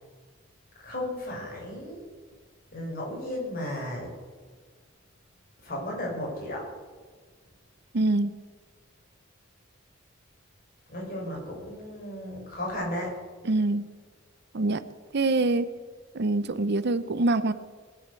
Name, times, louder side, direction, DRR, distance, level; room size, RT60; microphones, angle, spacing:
voice 1, 0.8-2.0 2.7-4.1 5.6-6.7 10.9-13.1, left 1 dB, 45° left, -3 dB, 7.0 m, -34 dB
voice 2, 7.9-8.3 13.4-13.8 14.5-14.8 15.1-15.7 16.1-17.5, right 2 dB, 55° right, 13 dB, 0.7 m, -24 dB
20.0 x 8.7 x 8.4 m, 1.5 s
head